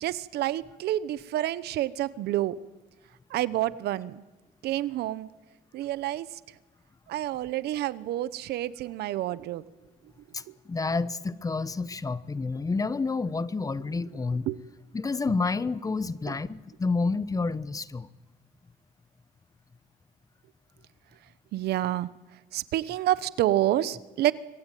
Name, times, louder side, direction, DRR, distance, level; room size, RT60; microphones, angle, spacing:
voice 1, 0.0-2.5 3.3-4.2 4.6-5.3 5.7-6.3 7.1-9.6 10.5-10.6 14.5-14.6 21.5-22.1 22.5-24.3, right 13 dB, 75° right, 17 dB, 0.9 m, -28 dB
voice 2, 10.3-14.5 14.9-18.1, left 4 dB, 20° left, 17 dB, 1.1 m, -29 dB
25.5 x 20.0 x 9.2 m, 1.2 s
cardioid pair, 110°, 17 cm